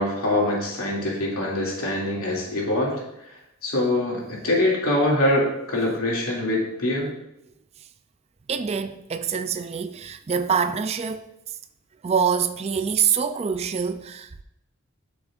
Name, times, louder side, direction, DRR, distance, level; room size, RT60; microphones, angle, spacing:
voice 1, 0.0-3.0 3.6-7.1, left 1 dB, 80° left, 2.5 m, -24 dB
voice 2, 8.5-11.3 12.0-14.4, right 6 dB, 30° right, 0.3 m, -25 dB
12.5 x 6.0 x 2.5 m
head